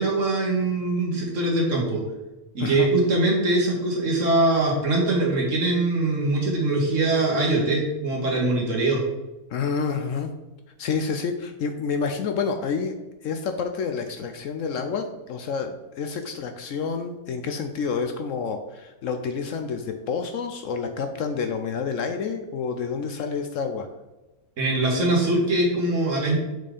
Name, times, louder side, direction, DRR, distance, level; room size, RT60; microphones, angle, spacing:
voice 1, 0.0-2.0 2.5-9.0 24.6-26.4, right 2 dB, 55° right, -2 dB, 2.0 m, -22 dB
voice 2, 9.5-10.3 10.8-12.9 13.2-23.9, left 5 dB, 65° left, 6 dB, 0.9 m, -28 dB
6.3 x 4.3 x 5.1 m, 1.1 s
omnidirectional pair, 1.6 m